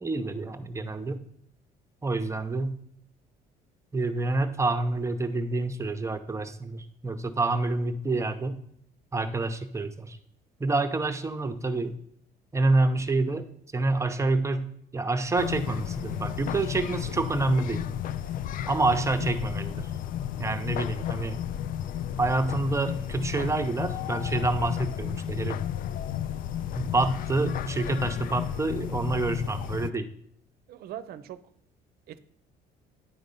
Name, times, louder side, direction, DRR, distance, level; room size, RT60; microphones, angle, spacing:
voice 1, 0.0-1.2 2.0-2.8 3.9-8.6 9.1-10.2 10.6-12.0 12.5-13.5 13.7-17.8 18.7-19.9 20.4-21.4 22.2-25.6 26.8-30.1, right 2 dB, 15° right, 9 dB, 0.7 m, -27 dB
sound 1, 15.4-29.9, left 10 dB, 55° left, 0.4 m, -33 dB
voice 2, 17.2-17.6 30.7-31.4 32.1-32.2, right 11 dB, 65° right, 14 dB, 0.6 m, -42 dB
10.0 x 3.9 x 5.3 m, 0.66 s
cardioid pair, 110°, 17 cm